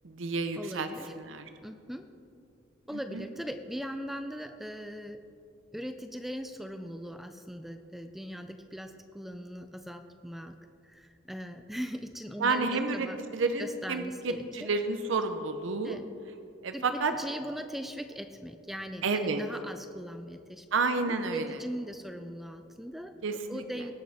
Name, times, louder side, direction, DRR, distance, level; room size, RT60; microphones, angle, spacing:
voice 1, 0.0-1.5 3.1-3.2 12.4-16.0 16.6-17.1 19.0-19.4 20.7-21.6 23.2-23.6, right 4 dB, 80° right, 8 dB, 0.6 m, -30 dB
voice 2, 0.6-1.1 1.6-2.1 2.9-5.2 5.7-10.6 10.8-13.2 13.6-14.7 15.8-16.1 16.7-20.7 21.1-23.9, equal, ahead, 7 dB, 0.3 m, -40 dB
19.0 x 6.4 x 3.5 m, 2.5 s
head